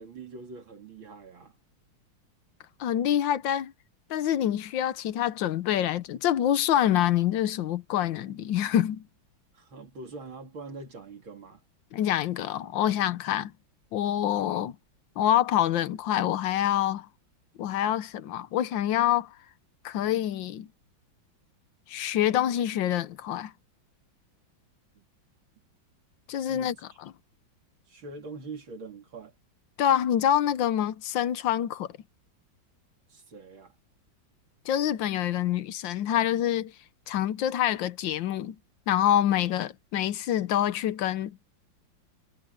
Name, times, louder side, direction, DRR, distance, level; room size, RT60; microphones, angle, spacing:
voice 1, 0.0-1.6 9.5-11.6 25.0-25.1 26.5-26.8 27.9-29.3 33.1-33.8, right 3 dB, 80° right, 3.7 m, -43 dB
voice 2, 2.8-3.7 4.1-9.0 11.9-13.5 13.9-14.8 15.2-17.1 17.6-19.3 19.9-20.7 21.9-23.5 26.3-26.8 27.0-27.1 29.8-31.9 34.7-36.7 37.1-38.6 38.9-41.4, left 11 dB, 75° left, 1.6 m, -26 dB
omnidirectional pair, 2.1 m